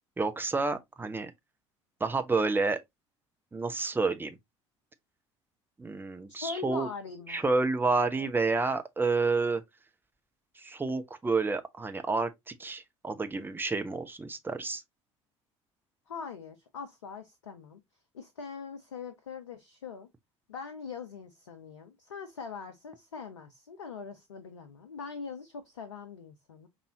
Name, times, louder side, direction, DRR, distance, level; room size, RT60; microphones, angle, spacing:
voice 1, 0.2-1.3 2.0-2.8 3.5-4.3 5.8-6.9 7.3-9.6 10.6-14.8, right 3 dB, 15° right, 0.7 m, -29 dB
voice 2, 6.3-7.5 8.2-8.3 16.1-17.8 18.1-20.1 20.5-26.7, left 5 dB, 75° left, 0.5 m, -42 dB
5.4 x 2.7 x 2.8 m
figure-of-eight pair, 60°, 16 cm